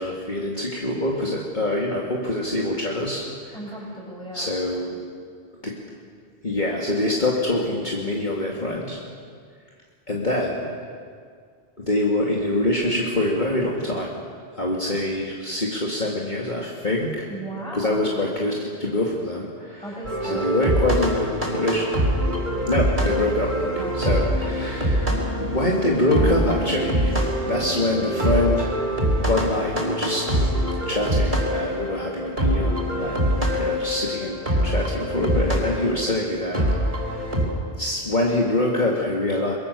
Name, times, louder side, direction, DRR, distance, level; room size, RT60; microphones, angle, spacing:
voice 1, 0.0-3.6 4.3-5.0 5.6-5.8 6.4-9.0 10.1-10.7 11.8-14.2 14.6-17.2 17.7-20.0 20.2-21.9 22.7-25.1 25.4-28.8 29.3-30.5 30.9-36.6 37.1-37.3 37.8-39.5, left 1 dB, 40° left, -3 dB, 2.5 m, -25 dB
voice 2, 3.5-4.5 17.2-18.2 19.8-21.0 23.8-24.0, right 1 dB, 5° left, -3 dB, 8.0 m, -35 dB
sound 1, 20.0-37.5, equal, 45° right, 4.6 m, -24 dB
24.5 x 22.5 x 7.0 m, 2.1 s
omnidirectional pair, 1.2 m